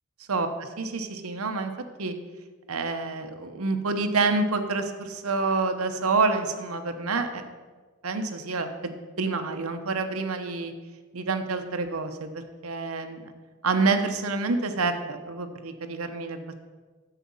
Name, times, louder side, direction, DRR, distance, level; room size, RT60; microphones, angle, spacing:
voice 1, 0.3-1.7 2.0-2.1 2.7-7.4 8.0-8.9 9.2-10.7 11.1-13.3 13.6-16.4, right 3 dB, 85° right, 7 dB, 1.0 m, -28 dB
9.9 x 7.4 x 5.5 m, 1.4 s
head